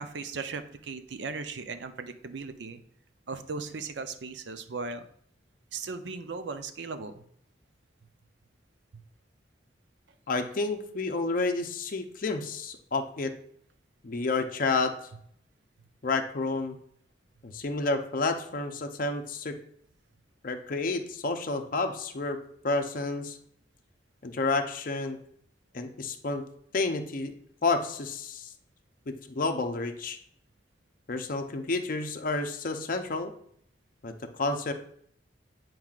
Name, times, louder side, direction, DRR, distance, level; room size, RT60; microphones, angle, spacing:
voice 1, 0.0-2.8 3.3-5.1 5.7-7.2 8.9-9.0, right 4 dB, 75° right, 9 dB, 0.6 m, -37 dB
voice 2, 10.3-13.3 14.0-14.9 16.0-16.8 17.4-19.6 20.4-22.4 22.6-23.4 24.2-25.2 25.7-26.4 26.7-27.3 27.6-28.5 29.1-30.2 31.1-33.3 34.0-34.7, left 3 dB, 50° left, 5 dB, 0.6 m, -30 dB
9.0 x 4.7 x 2.4 m, 0.67 s
head